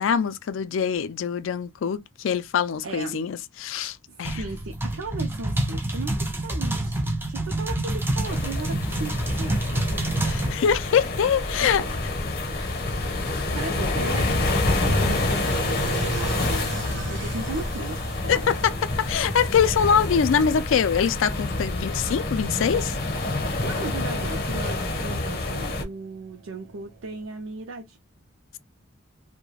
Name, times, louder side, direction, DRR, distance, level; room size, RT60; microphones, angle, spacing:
voice 1, 0.0-4.4 10.2-11.8 12.6-12.7 13.3-13.4 18.3-18.7 19.0-23.0, left 7 dB, 75° left, 0.4 m, -24 dB
voice 2, 2.8-3.2 3.8-9.9 11.6-11.9 13.5-14.4 14.7-18.5 21.5-21.6 23.6-28.0, right 3 dB, 90° right, 0.5 m, -37 dB
sound 1, 4.2-10.5, right 1 dB, 10° right, 0.4 m, -27 dB
sound 2, 8.3-25.8, left 2 dB, 50° left, 0.8 m, -27 dB
sound 3, 11.4-27.2, right 3 dB, 70° right, 1.0 m, -40 dB
2.3 x 2.1 x 3.1 m
head